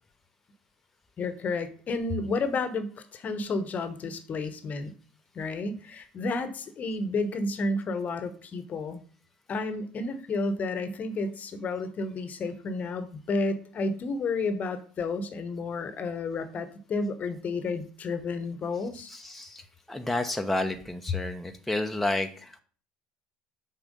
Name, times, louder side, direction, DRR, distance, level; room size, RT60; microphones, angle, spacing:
voice 1, 1.2-4.9 5.3-9.0 9.5-19.1, left 3 dB, 40° left, 12 dB, 1.0 m, -31 dB
voice 2, 18.7-22.6, left 2 dB, 5° left, 4 dB, 0.8 m, -31 dB
7.1 x 4.6 x 5.3 m, 0.42 s
hypercardioid pair, 65°, 4 cm